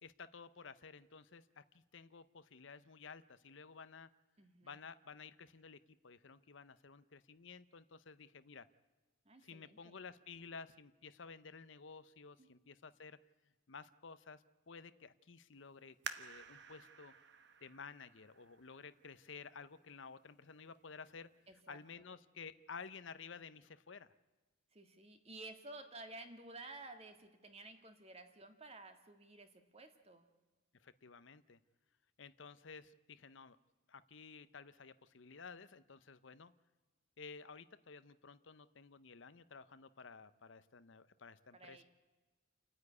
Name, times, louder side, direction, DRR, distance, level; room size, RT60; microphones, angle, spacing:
voice 1, 0.0-4.1 4.6-8.7 9.4-13.2 13.7-17.1 17.6-21.3 21.7-24.1 30.8-31.6 32.2-33.6 33.9-36.5 37.2-41.8, left 5 dB, 65° left, 14 dB, 0.7 m, -53 dB
voice 2, 4.4-4.8 9.3-10.0 12.4-12.5 21.5-22.1 24.7-30.3 41.5-41.8, right 2 dB, 30° right, 7 dB, 1.9 m, -53 dB
sound 1, 16.0-19.4 20.0-20.1 20.7-21.1 21.5-21.6, right 6 dB, 55° right, 1.2 m, -51 dB
29.5 x 9.9 x 9.5 m, 1.3 s
head